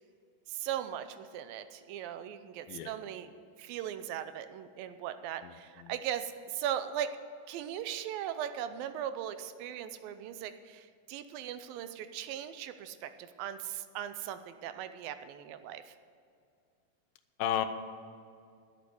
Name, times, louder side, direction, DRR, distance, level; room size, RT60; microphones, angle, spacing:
voice 1, 0.5-3.3 3.6-7.1 7.5-15.9, right 10 dB, 85° right, 11 dB, 2.4 m, -38 dB
voice 2, 2.7-3.0 5.4-5.9 17.4-17.7, left 11 dB, 85° left, 10 dB, 2.5 m, -34 dB
11.5 x 8.4 x 7.9 m, 2.4 s
omnidirectional pair, 4.2 m